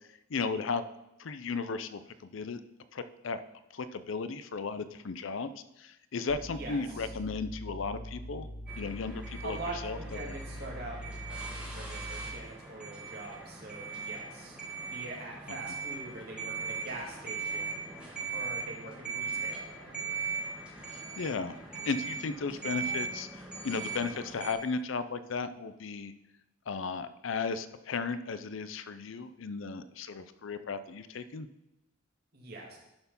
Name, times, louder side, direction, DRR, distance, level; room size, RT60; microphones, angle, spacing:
voice 1, 0.3-0.8 1.2-2.6 2.9-3.4 3.7-5.5 5.8-8.5 8.8-9.6 9.8-10.3 15.5-15.6 20.9-21.5 21.8-23.3 23.6-26.1 26.7-31.5, left 4 dB, 70° left, 13 dB, 0.5 m, -35 dB
sound 1, 6.3-12.4, equal, 50° left, 1.8 m, -43 dB
voice 2, 6.5-7.0 9.4-14.6 14.9-20.0 32.3-32.8, right 2 dB, 50° right, -1 dB, 2.1 m, -44 dB
sound 2, 8.7-24.5, right 5 dB, 5° right, 1.5 m, -39 dB
11.5 x 4.4 x 5.4 m, 0.91 s
head